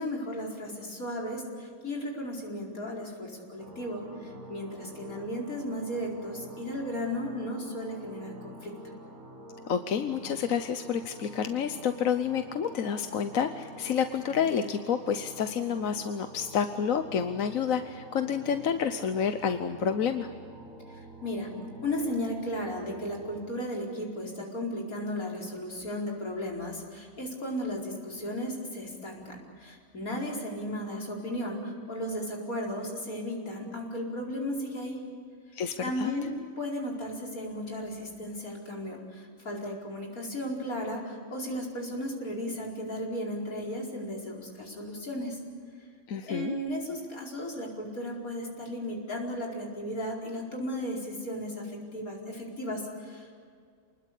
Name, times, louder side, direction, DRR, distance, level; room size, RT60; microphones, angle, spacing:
voice 1, 0.0-8.7 20.9-21.5 21.8-35.0 35.8-45.4 46.2-53.4, left 1 dB, 90° left, -2 dB, 5.2 m, -35 dB
sound 1, 3.6-23.5, right 1 dB, 75° right, 2.2 m, -48 dB
voice 2, 9.7-20.3 35.5-36.1 46.1-46.6, left 7 dB, 70° left, 8 dB, 1.3 m, -29 dB
28.0 x 20.5 x 8.4 m, 2.1 s
omnidirectional pair, 1.5 m